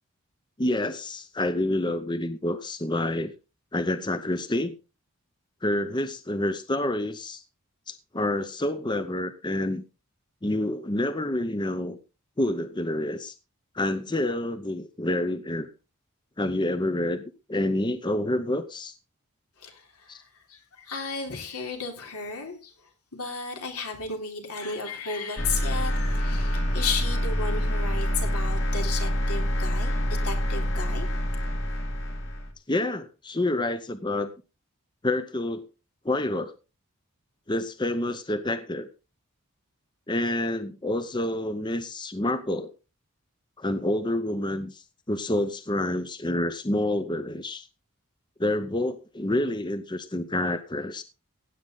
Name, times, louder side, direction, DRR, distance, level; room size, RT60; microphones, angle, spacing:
voice 1, 0.6-3.3 3.7-4.7 5.6-7.4 7.9-9.8 10.4-12.0 12.4-13.3 13.7-15.7 16.4-17.2 17.5-18.9 20.1-20.2 32.7-34.3 35.0-35.6 36.0-36.5 37.5-38.9 40.1-42.7 43.6-47.7 48.4-51.0, left 1 dB, 20° left, 0.7 m, -28 dB
voice 2, 19.6-20.2 20.5-22.7 23.1-31.1, left 4 dB, 85° left, 3.5 m, -34 dB
sound 1, 25.4-32.5, equal, 55° left, 2.2 m, -26 dB
16.0 x 8.8 x 3.9 m
head